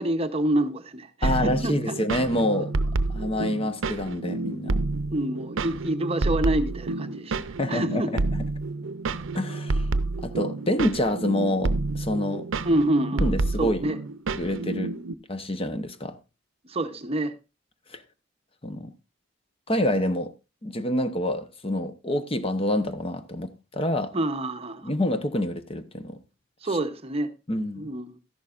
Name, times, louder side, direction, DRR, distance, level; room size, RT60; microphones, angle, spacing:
voice 1, 0.0-1.9 5.1-8.1 12.6-14.0 16.6-17.4 24.1-24.9 26.6-27.3 27.8-28.2, right 1 dB, 30° right, 0.8 m, -27 dB
voice 2, 1.2-2.7 3.1-4.8 7.6-8.5 9.3-9.9 10.2-12.5 13.2-13.9 14.4-14.9 15.3-16.2 17.9-18.0 18.6-18.9 19.7-20.3 20.6-24.1 24.8-26.2 27.5-27.9, left 1 dB, 30° left, 0.8 m, -27 dB
sound 1, 1.2-15.1, right 2 dB, 75° right, 0.6 m, -29 dB
13.0 x 11.0 x 2.5 m
head